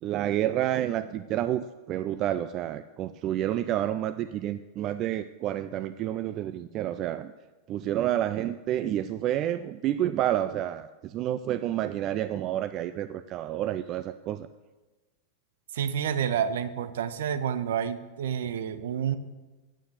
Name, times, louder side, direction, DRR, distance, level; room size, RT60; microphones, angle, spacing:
voice 1, 0.0-7.3 7.7-14.5, right 12 dB, 35° right, 12 dB, 0.3 m, -29 dB
voice 2, 15.7-19.2, right 8 dB, 60° right, 12 dB, 0.7 m, -29 dB
9.4 x 8.4 x 6.8 m, 1.2 s
figure-of-eight pair, 90°, 0 cm